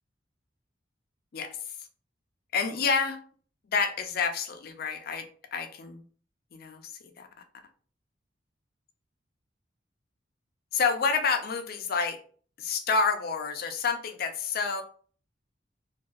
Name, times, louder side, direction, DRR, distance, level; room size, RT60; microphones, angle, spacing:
voice 1, 2.5-3.2 3.7-5.2 5.5-6.0 6.5-6.9 7.2-7.3 10.7-12.2 12.6-14.8, left 5 dB, 55° left, 6 dB, 0.4 m, -28 dB
2.6 x 2.3 x 2.3 m, 0.44 s
head